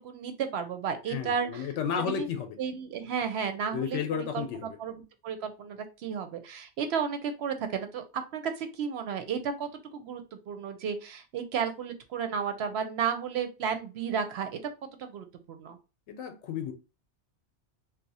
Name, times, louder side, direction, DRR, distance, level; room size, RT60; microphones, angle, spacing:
voice 1, 0.0-1.7 2.1-2.3 2.6-4.9 5.2-14.6 15.0-15.8, right 7 dB, 70° right, 0.8 m, -33 dB
voice 2, 1.1-2.5 3.7-4.8 16.1-16.7, left 7 dB, 85° left, 0.9 m, -32 dB
2.8 x 2.1 x 4.0 m
omnidirectional pair, 1.2 m